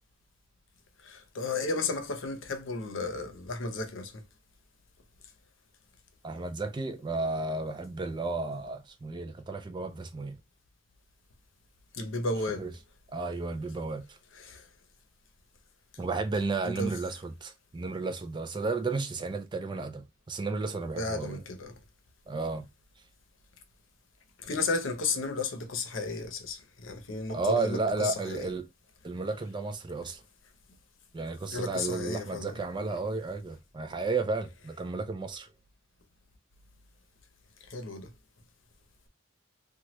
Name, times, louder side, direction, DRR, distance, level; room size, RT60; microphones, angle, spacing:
voice 1, 1.0-4.2 11.9-12.7 14.4-14.7 16.6-16.9 21.0-21.7 24.4-28.5 31.5-32.5 37.7-38.1, left 3 dB, 75° left, 0.7 m, -33 dB
voice 2, 6.2-10.4 12.6-12.7 13.1-14.2 16.0-21.4 22.3-22.7 27.3-28.7 29.0-30.2 31.1-35.5, right 3 dB, 25° right, 0.4 m, -33 dB
3.0 x 2.3 x 2.9 m
head